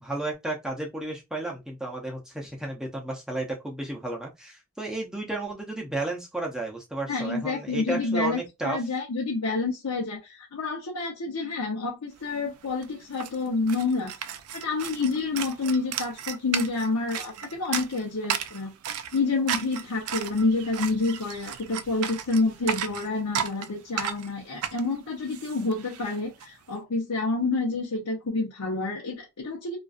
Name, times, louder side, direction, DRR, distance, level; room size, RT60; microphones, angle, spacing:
voice 1, 0.0-8.8, right 2 dB, 5° right, 0.5 m, -33 dB
voice 2, 7.1-14.1 14.5-18.7 19.1-29.8, left 3 dB, 90° left, 0.7 m, -28 dB
sound 1, 12.3-12.4 12.6-26.5, right 9 dB, 80° right, 0.3 m, -34 dB
2.4 x 2.4 x 2.4 m
head